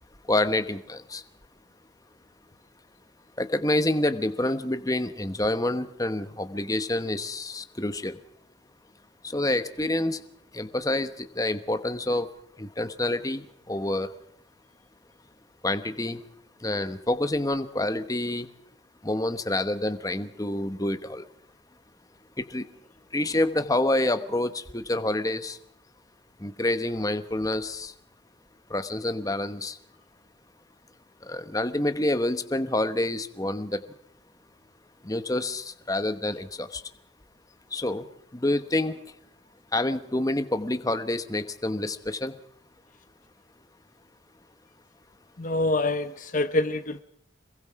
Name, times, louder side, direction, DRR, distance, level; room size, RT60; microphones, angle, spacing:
voice 1, 0.3-1.2 3.4-8.2 9.2-10.2 10.5-12.3 12.6-14.1 15.6-16.2 16.6-18.5 19.0-21.2 22.4-22.6 23.1-25.6 26.4-27.9 28.7-29.8 31.3-33.8 35.0-36.8 37.7-38.0 38.3-39.0 39.7-42.3, left 1 dB, 20° left, 11 dB, 1.1 m, -27 dB
voice 2, 45.4-47.0, left 2 dB, 40° left, 10 dB, 0.9 m, -26 dB
27.0 x 22.0 x 4.9 m, 0.73 s
head